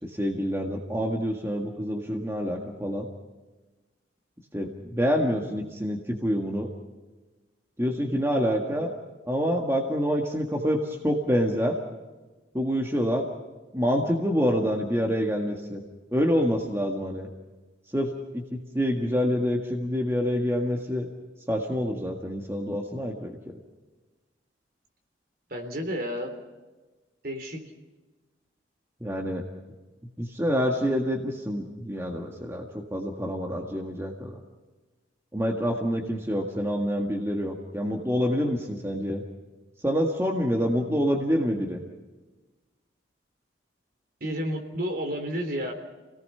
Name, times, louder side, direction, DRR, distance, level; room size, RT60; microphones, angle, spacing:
voice 1, 0.0-3.1 4.5-6.7 7.8-8.9 9.3-11.8 12.5-13.2 13.7-15.8 16.1-17.3 17.9-21.1 21.5-23.3 29.0-29.4 30.2-34.4 35.3-39.2 39.8-41.8, equal, 15° right, 1 dB, 1.7 m, -27 dB
voice 2, 25.5-26.3 27.2-27.6 44.2-45.7, equal, 50° right, 4 dB, 3.5 m, -31 dB
29.0 x 18.0 x 5.6 m, 1.2 s
head